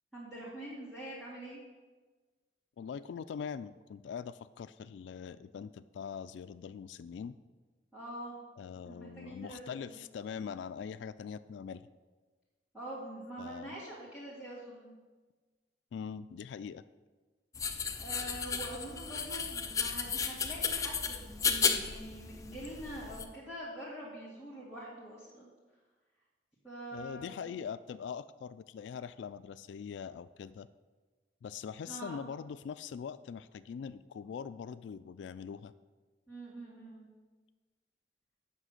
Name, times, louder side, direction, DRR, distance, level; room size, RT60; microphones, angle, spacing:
voice 1, 0.1-1.6 7.9-8.3 8.9-10.0 12.7-14.9 17.9-25.5 26.6-27.4 31.9-32.2 36.3-37.1, right 1 dB, 5° right, -11 dB, 2.0 m, -45 dB
voice 2, 2.8-7.4 8.6-11.9 13.4-13.7 15.9-16.8 26.9-30.7 31.4-35.7, left 7 dB, 80° left, 14 dB, 0.3 m, -42 dB
sound 1, 17.5-23.2, left 6 dB, 20° left, 0.5 m, -34 dB
7.5 x 6.2 x 6.5 m, 1.3 s
head